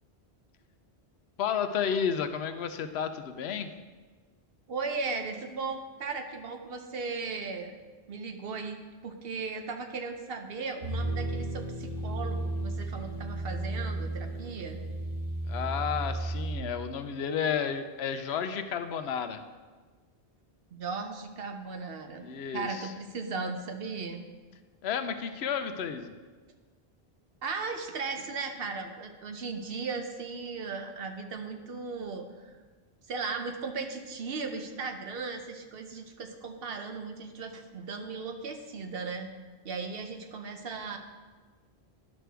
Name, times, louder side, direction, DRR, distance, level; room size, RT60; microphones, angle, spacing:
voice 1, 1.4-3.7 15.5-19.4 22.2-22.9 24.8-26.1, left 7 dB, 80° left, 9 dB, 0.8 m, -32 dB
voice 2, 4.7-7.7 8.1-14.8 20.7-22.3 22.5-24.3 27.4-32.5 33.1-39.3 39.6-41.0, right 4 dB, 65° right, 5 dB, 0.9 m, -37 dB
sound 1, 10.8-16.6, right 2 dB, 35° right, 1.7 m, -34 dB
10.5 x 6.2 x 3.4 m, 1.4 s
omnidirectional pair, 1.1 m